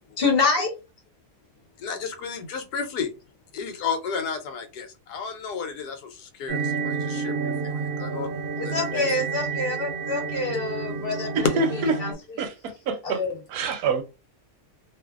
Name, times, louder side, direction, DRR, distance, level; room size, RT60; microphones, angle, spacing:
voice 1, 0.2-0.7 8.6-11.5 12.0-12.4 13.0-13.3, left 3 dB, 45° left, 0.9 m, -26 dB
voice 2, 1.8-3.1 3.5-8.3 8.6-9.1, left 6 dB, 90° left, 1.2 m, -33 dB
sound 1, 6.5-12.1, right 5 dB, 55° right, 0.8 m, -30 dB
voice 3, 11.3-11.9 12.4-13.2 13.5-14.0, right 4 dB, 80° right, 1.1 m, -26 dB
2.6 x 2.5 x 2.3 m
omnidirectional pair, 1.6 m